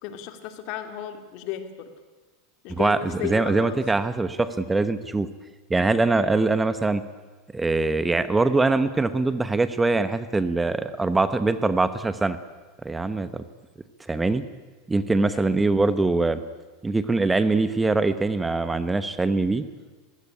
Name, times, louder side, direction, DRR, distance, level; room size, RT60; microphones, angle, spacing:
voice 1, 0.0-1.9 2.6-3.8 15.3-15.7, left 10 dB, 55° left, 8 dB, 2.7 m, -34 dB
voice 2, 3.2-5.3 5.7-7.0 7.5-12.4 12.8-13.4 14.1-14.4 14.9-16.4 16.8-19.6, right 3 dB, 10° right, 12 dB, 1.0 m, -23 dB
21.5 x 16.0 x 9.9 m, 1.3 s
supercardioid pair, 115°, 0 cm